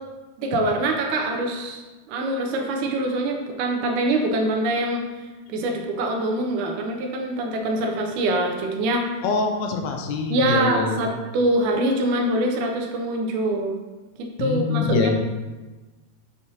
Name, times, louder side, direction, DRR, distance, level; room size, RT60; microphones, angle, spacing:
voice 1, 0.4-1.8 2.1-5.0 5.5-9.1 10.3-13.8 14.4-15.1, right 1 dB, 90° right, 1 dB, 1.7 m, -24 dB
voice 2, 9.2-11.0 14.4-15.1, left 4 dB, 80° left, 4 dB, 2.5 m, -24 dB
7.4 x 6.2 x 2.8 m, 1.2 s
omnidirectional pair, 4.4 m